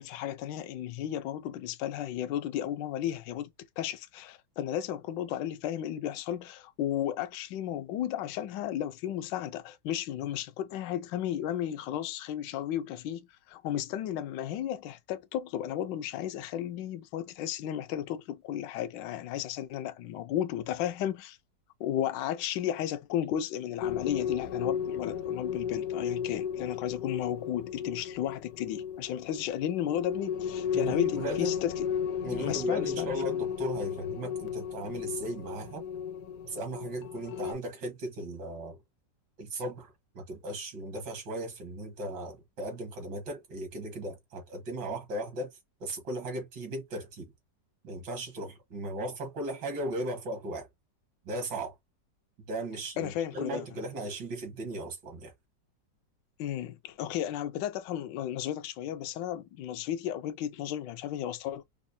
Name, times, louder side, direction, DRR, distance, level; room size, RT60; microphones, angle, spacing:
voice 1, 0.0-3.5 3.8-21.4 21.8-31.9 32.3-33.1 53.0-53.7 56.4-61.6, left 11 dB, 85° left, 1.3 m, -34 dB
sound 1, 23.8-37.5, left 8 dB, 65° left, 1.0 m, -34 dB
voice 2, 30.7-31.5 32.2-35.8 36.4-38.8 39.4-45.5 45.8-47.3 47.8-50.7 51.3-51.8 52.4-55.3, right 1 dB, 80° right, 2.2 m, -37 dB
5.1 x 2.1 x 2.6 m
omnidirectional pair, 1.9 m